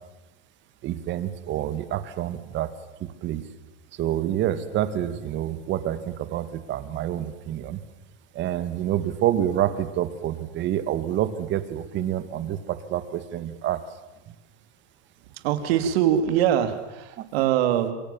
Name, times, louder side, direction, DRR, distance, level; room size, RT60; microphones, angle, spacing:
voice 1, 0.8-2.7 3.0-3.4 4.0-7.8 8.4-13.8 17.2-17.3, right 11 dB, 35° right, 12 dB, 2.0 m, -27 dB
voice 2, 15.3-17.9, right 10 dB, 70° right, 9 dB, 3.3 m, -23 dB
27.5 x 22.5 x 7.2 m, 1.1 s
supercardioid pair, 145°, 32 cm